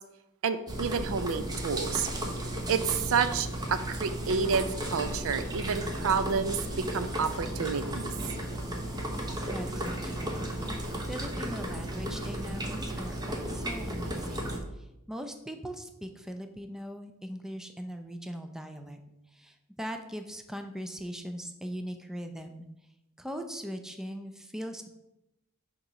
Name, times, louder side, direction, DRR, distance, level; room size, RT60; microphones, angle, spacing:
voice 1, 0.4-2.1 2.7-8.1, right 6 dB, 65° right, 11 dB, 0.5 m, -29 dB
sound 1, 0.7-14.6, right 1 dB, 20° right, 0.8 m, -34 dB
voice 2, 9.5-10.5 11.0-19.0 19.3-22.7 23.2-24.9, equal, ahead, 6 dB, 0.4 m, -40 dB
6.5 x 3.0 x 5.6 m, 0.90 s
head